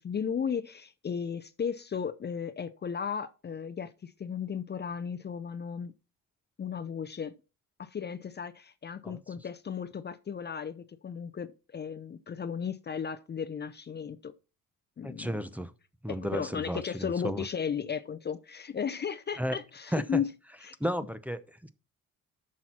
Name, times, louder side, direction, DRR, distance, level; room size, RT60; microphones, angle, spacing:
voice 1, 0.0-5.9 6.6-7.3 7.8-14.3 15.0-15.4 16.1-20.3 20.6-20.7, left 7 dB, 30° left, 0.6 m, -35 dB
voice 2, 15.0-15.7 16.0-17.5 19.4-19.6 19.9-20.2 20.8-21.7, equal, 5° right, 0.7 m, -33 dB
9.9 x 6.2 x 4.3 m
cardioid pair, 105°, 33 cm